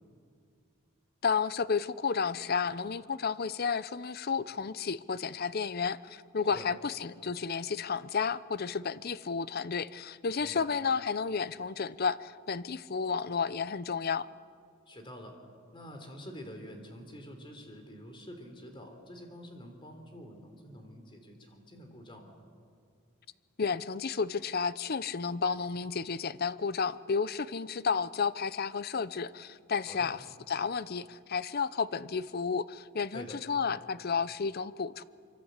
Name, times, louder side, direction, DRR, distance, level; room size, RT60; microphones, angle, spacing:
voice 1, 1.2-14.3 23.6-35.0, left 5 dB, 45° left, 16 dB, 0.6 m, -32 dB
voice 2, 14.9-15.4 15.7-22.4 29.9-30.1 33.1-33.4, equal, 25° left, 4 dB, 3.5 m, -47 dB
25.0 x 25.0 x 8.2 m, 2.3 s
head